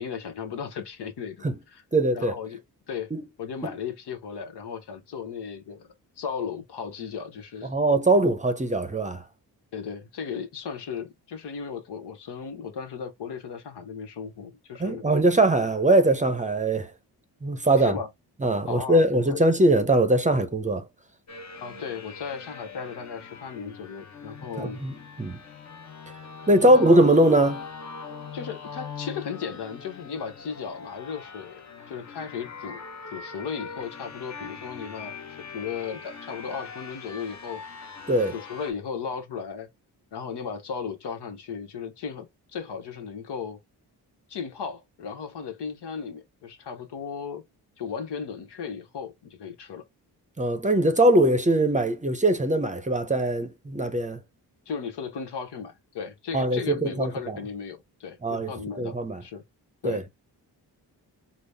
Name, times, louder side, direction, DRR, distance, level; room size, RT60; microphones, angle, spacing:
voice 1, 0.0-1.8 2.1-2.6 2.9-3.1 3.4-5.9 6.2-7.7 9.7-15.0 17.8-18.1 18.6-19.0 19.3-19.4 21.6-24.8 26.6-27.0 28.3-31.6 31.9-32.8 33.1-35.2 35.5-37.6 38.3-39.7 40.1-42.3 42.5-43.6 44.3-47.4 47.8-49.8 54.7-59.4 59.8-60.0, left 6 dB, 80° left, 1.0 m, -35 dB
voice 2, 1.9-2.4 3.1-3.2 3.6-3.7 7.6-9.2 14.8-16.9 17.4-18.0 18.4-20.8 24.6-25.4 26.5-27.7 38.1-38.3 50.4-54.2 56.3-57.4 58.2-58.5 58.8-59.2 59.8-60.0, right 1 dB, 20° right, 0.6 m, -21 dB
sound 1, 21.3-38.7, left 5 dB, 45° left, 0.9 m, -42 dB
3.9 x 2.0 x 3.3 m
cardioid pair, 70°, 40 cm